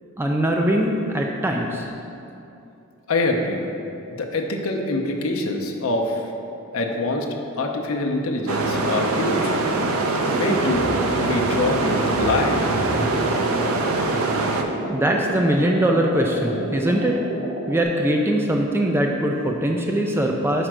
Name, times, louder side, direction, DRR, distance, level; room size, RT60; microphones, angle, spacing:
voice 1, 0.2-1.9 14.9-17.2 17.7-20.7, right 1 dB, 10° right, 1 dB, 0.3 m, -21 dB
voice 2, 3.1-3.6 4.2-6.2 6.7-7.3 7.6-9.6 10.3-10.8 11.1-12.7, left 2 dB, 75° left, 1 dB, 0.7 m, -24 dB
sound 1, 8.5-14.6, right 2 dB, 75° right, 0.5 m, -23 dB
sound 2, 9.1-17.8, right 2 dB, 40° right, 0.9 m, -32 dB
sound 3, 10.7-15.4 15.7-15.8, equal, 20° left, 0.9 m, -35 dB
5.0 x 4.4 x 6.1 m, 2.8 s
head